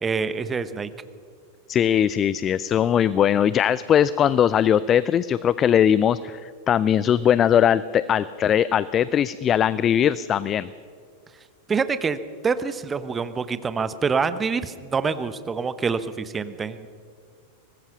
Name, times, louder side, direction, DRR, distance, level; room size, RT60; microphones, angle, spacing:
voice 1, 0.0-0.9 11.7-12.2 12.4-16.9, right 5 dB, 15° right, 13 dB, 1.0 m, -26 dB
voice 2, 1.7-10.7, left 9 dB, 25° left, 18 dB, 0.5 m, -20 dB
24.0 x 20.0 x 5.8 m, 2.1 s
figure-of-eight pair, 90°, 0 cm